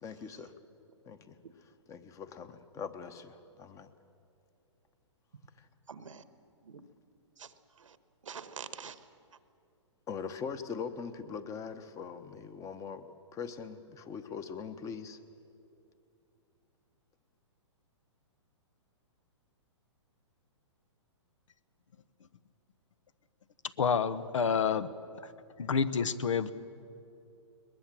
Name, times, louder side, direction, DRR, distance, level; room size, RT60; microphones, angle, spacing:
voice 1, 0.0-0.5 1.1-1.4 1.9-3.9 5.6-5.7 10.1-15.2, left 6 dB, 20° left, 12 dB, 1.1 m, -41 dB
voice 2, 5.9-6.3 6.6-6.8 7.4-8.0 8.2-9.0, right 6 dB, 90° right, 12 dB, 1.3 m, -46 dB
voice 3, 23.8-24.9 25.6-26.5, left 6 dB, 80° left, 16 dB, 1.0 m, -28 dB
22.0 x 20.5 x 7.6 m, 2.6 s
hypercardioid pair, 135°, 16 cm